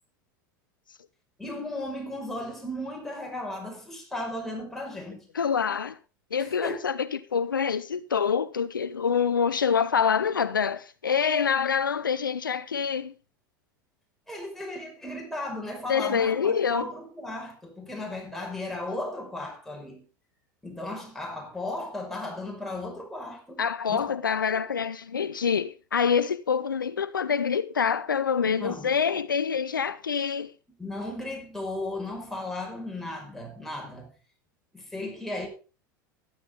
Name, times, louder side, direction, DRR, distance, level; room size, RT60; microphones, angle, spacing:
voice 1, 1.4-5.3 6.4-6.7 14.3-20.1 20.6-24.0 28.5-28.9 30.8-34.1 34.7-35.5, left 1 dB, 5° left, 5.7 m, -36 dB
voice 2, 5.3-6.0 6.3-13.1 15.9-16.8 23.6-30.5, left 6 dB, 90° left, 0.5 m, -26 dB
13.0 x 11.0 x 3.8 m
hypercardioid pair, 85°, 11 cm